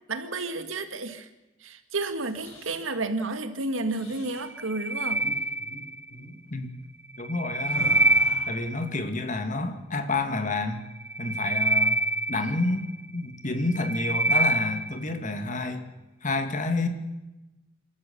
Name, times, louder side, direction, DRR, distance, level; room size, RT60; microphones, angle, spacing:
voice 1, 0.1-1.3 1.6-5.3, right 2 dB, 80° right, 9 dB, 1.8 m, -31 dB
sound 1, 2.1-3.0 3.9-4.5 5.1-5.3 5.6-5.8 6.1-6.4 7.7-8.6, left 1 dB, 85° left, 7.3 m, -42 dB
sound 2, 4.5-6.2 7.1-9.0 11.0-13.1 13.5-15.1, right 2 dB, 10° right, 1.1 m, -26 dB
voice 2, 7.2-7.9 8.5-10.8 11.2-12.0 12.3-15.9 16.2-16.9, left 2 dB, 40° left, 7 dB, 1.9 m, -29 dB
28.0 x 13.0 x 7.0 m, 1.0 s
head